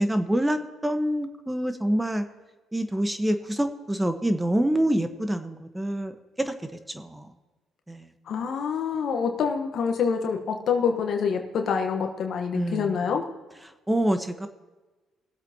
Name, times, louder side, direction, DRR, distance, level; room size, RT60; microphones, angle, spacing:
voice 1, 0.0-2.3 2.7-6.1 6.4-6.5 6.9-7.3 7.9-8.1 12.5-12.9 13.9-14.5, right 1 dB, 10° right, 8 dB, 1.2 m, -26 dB
voice 2, 8.3-13.3, left 6 dB, 65° left, 4 dB, 1.2 m, -26 dB
20.0 x 8.0 x 2.9 m, 1.2 s
supercardioid pair, 65°, 0 cm